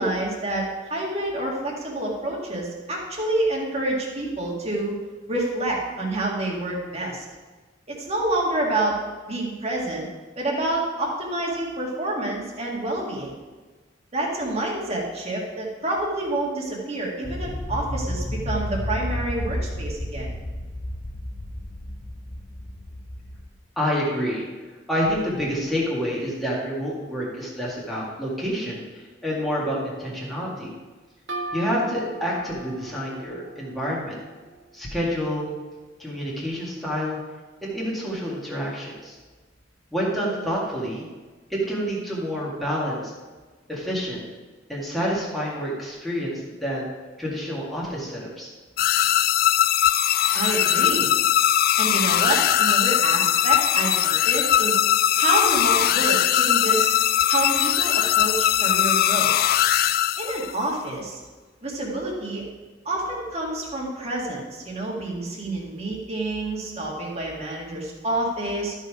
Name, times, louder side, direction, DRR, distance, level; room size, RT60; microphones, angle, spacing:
voice 1, 0.0-4.9 5.3-7.2 7.9-9.0 9.3-10.0 10.4-13.3 14.1-20.3 50.3-51.1 51.8-54.8 55.2-57.0 57.3-59.3 60.2-61.2 61.6-62.4 62.8-68.7, right 1 dB, 35° right, -2 dB, 2.1 m, -28 dB
sound 1, 17.2-23.5, left 1 dB, 35° left, 0.7 m, -31 dB
voice 2, 23.8-24.5 24.9-30.7 31.5-34.2 34.7-35.5 36.0-37.2 37.6-39.2 39.9-41.1 41.5-43.1 43.7-44.2 44.7-46.9 47.2-48.5, equal, ahead, -6 dB, 2.0 m, -28 dB
sound 2, 31.3-34.8, right 3 dB, 70° right, 1.9 m, -38 dB
sound 3, 48.8-60.6, left 11 dB, 50° left, 0.3 m, -20 dB
13.0 x 5.5 x 4.9 m, 1.3 s
head